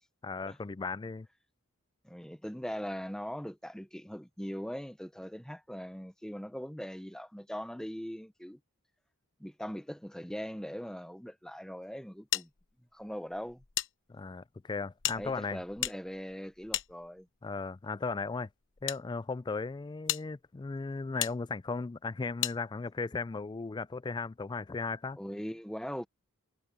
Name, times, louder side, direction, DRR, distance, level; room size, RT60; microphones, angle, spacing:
voice 1, 0.2-1.3 14.1-15.6 17.4-18.5 18.8-25.2, left 4 dB, 20° left, 0.3 m, -36 dB
voice 2, 2.0-8.6 9.4-12.5 12.9-13.6 15.1-17.3 25.2-26.1, equal, 5° left, 0.8 m, -40 dB
sound 1, 12.3-13.9 14.2-14.3 15.0-17.5 18.3-19.0 19.6-19.7 20.1-20.2 21.2-21.3 22.4-22.6, left 13 dB, 55° left, 0.9 m, -35 dB
head